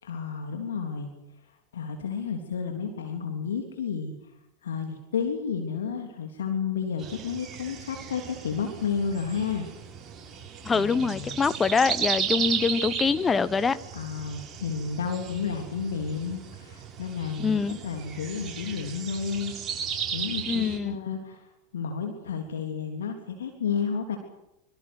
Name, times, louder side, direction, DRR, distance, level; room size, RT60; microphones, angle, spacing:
voice 1, 0.0-1.1 1.7-4.1 4.6-9.7 10.7-11.4 13.9-19.5 20.1-24.2, left 6 dB, 70° left, 3.4 m, -31 dB
sound 1, 7.0-20.8, right 7 dB, 25° right, 7.8 m, -35 dB
voice 2, 10.6-13.8 17.4-17.8 20.5-21.0, left 5 dB, 20° left, 1.3 m, -24 dB
25.5 x 25.0 x 6.2 m
figure-of-eight pair, 90°, 0 cm